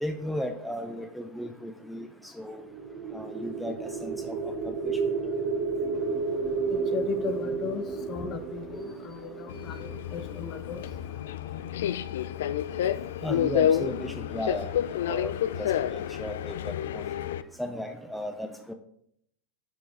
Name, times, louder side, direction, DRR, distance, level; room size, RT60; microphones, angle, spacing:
voice 1, 0.0-2.1 2.4-2.6 3.1-3.7 4.0-4.4 13.2-14.7 15.1-15.3 15.6-16.5 16.9-17.0 17.6-18.7, equal, ahead, 4 dB, 0.5 m, -35 dB
sound 1, 2.6-10.7, right 4 dB, 35° right, 0.8 m, -32 dB
voice 2, 6.9-7.8 8.1-10.8, left 6 dB, 30° left, 9 dB, 0.8 m, -36 dB
Subway metro underground, 9.5-17.4, left 10 dB, 80° left, 0.3 m, -29 dB
8.0 x 4.8 x 3.8 m, 0.69 s
supercardioid pair, 140°, 0 cm